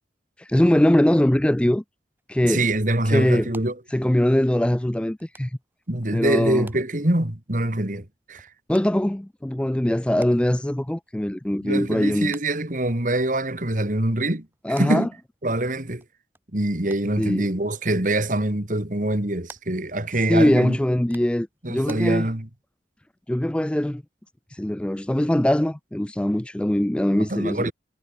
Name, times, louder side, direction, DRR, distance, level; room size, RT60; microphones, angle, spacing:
voice 1, 0.4-1.8 2.3-2.6 3.1-3.5 3.9-5.5 6.1-6.7 8.7-12.3 14.6-15.1 17.2-17.5 20.3-22.3 23.3-24.0 24.5-27.7, left 1 dB, 5° left, 0.3 m, -22 dB
sound 1, 2.2-22.0, right 2 dB, 10° right, 6.8 m, -54 dB
voice 2, 2.4-3.7 5.9-8.5 11.6-14.5 14.7-15.1 15.4-16.0 16.5-20.8 21.6-22.5 27.3-27.7, right 1 dB, 45° right, 2.4 m, -24 dB
head